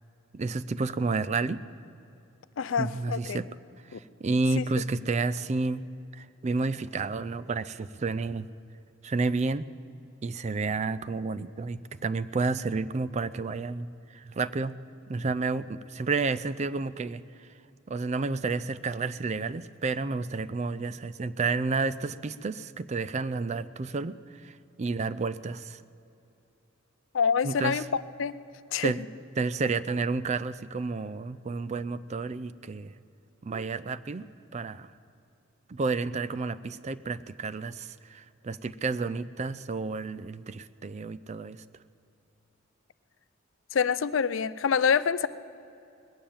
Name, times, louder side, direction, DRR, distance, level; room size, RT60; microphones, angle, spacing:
voice 1, 0.3-1.6 2.8-3.5 3.9-5.8 6.1-8.5 9.0-9.7 10.2-14.8 15.1-17.5 17.9-25.8 27.4-27.8 28.8-29.0 29.4-32.9 33.4-34.9 35.7-41.6, right 3 dB, 35° right, 15 dB, 0.4 m, -31 dB
voice 2, 2.6-3.4 3.9-4.0 4.6-4.7 27.1-28.3 28.7-28.9 43.7-45.3, left 6 dB, 65° left, 15 dB, 0.5 m, -26 dB
20.0 x 7.5 x 8.6 m, 2.7 s
head